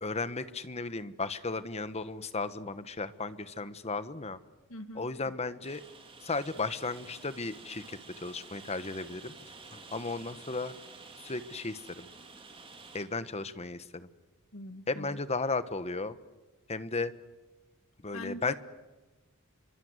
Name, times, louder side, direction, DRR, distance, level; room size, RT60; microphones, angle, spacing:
voice 1, 0.0-4.4 5.0-5.8 6.2-9.3 9.7-10.7 11.2-12.1 12.9-14.1 14.9-16.2 16.7-17.1 18.0-18.5, left 3 dB, 30° left, 12 dB, 1.2 m, -35 dB
voice 2, 4.7-5.4 14.5-15.2 18.1-18.5, left 1 dB, 70° left, 9 dB, 1.8 m, -43 dB
Rain, 5.6-13.0, right 4 dB, 25° right, 3.6 m, -50 dB
28.5 x 24.5 x 8.2 m, 1.1 s
head